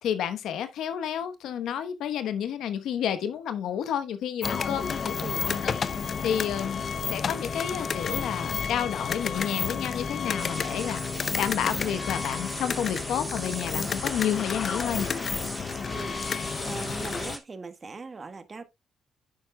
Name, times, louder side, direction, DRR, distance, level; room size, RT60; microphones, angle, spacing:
voice 1, 0.0-5.1 5.4-6.8 7.1-15.1, left 9 dB, 75° left, 0.9 m, -30 dB
sound 1, 4.4-17.4, left 6 dB, 45° left, 0.6 m, -31 dB
sound 2, 10.4-17.4, right 2 dB, 15° right, 1.6 m, -39 dB
voice 2, 15.9-18.6, right 4 dB, 30° right, 1.2 m, -40 dB
9.9 x 7.4 x 2.2 m
cardioid pair, 90°, 0 cm